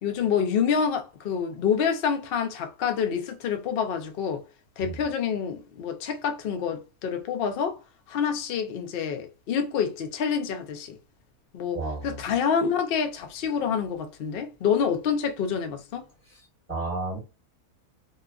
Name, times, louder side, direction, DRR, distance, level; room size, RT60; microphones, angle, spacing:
voice 1, 0.0-4.4 4.8-7.8 8.1-11.0 11.5-11.8 12.0-16.0, left 7 dB, 65° left, 0.5 m, -27 dB
voice 2, 11.7-12.2 16.3-17.2, right 2 dB, 10° right, 1.1 m, -33 dB
2.9 x 2.3 x 2.3 m
omnidirectional pair, 1.6 m